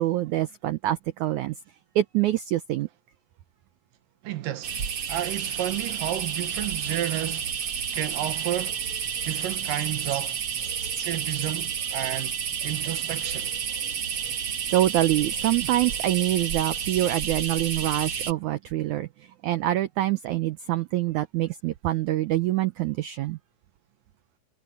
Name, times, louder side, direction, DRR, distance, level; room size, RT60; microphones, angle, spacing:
voice 1, 0.0-1.5 1.9-2.9 14.7-19.1 19.4-23.4, right 14 dB, 85° right, 1.7 m, -25 dB
voice 2, 4.2-4.8 5.1-7.5 7.9-8.8 9.2-10.4 10.8-12.4 12.6-13.5, right 13 dB, 70° right, 2.7 m, -31 dB
sound 1, 4.6-18.3, right 7 dB, 45° right, 1.9 m, -30 dB
omnidirectional pair, 4.4 m